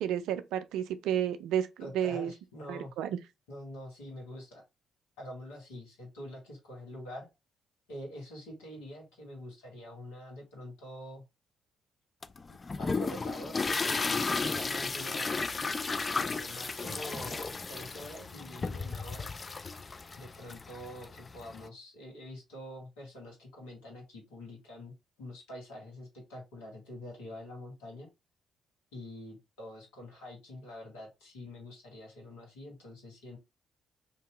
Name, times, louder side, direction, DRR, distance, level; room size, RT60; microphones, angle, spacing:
voice 1, 0.0-1.7 1.9-2.3 2.7-3.2, right 10 dB, 70° right, 0.3 m, -31 dB
voice 2, 1.8-2.9 3.5-4.6 5.2-7.3 7.9-11.2 12.5-15.4 16.1-19.3 20.2-28.1 28.9-33.4, left 1 dB, 80° left, 1.1 m, -46 dB
sound 1, 12.2-21.7, left 4 dB, 35° left, 0.3 m, -34 dB
2.8 x 2.5 x 3.0 m
hypercardioid pair, 45°, 0 cm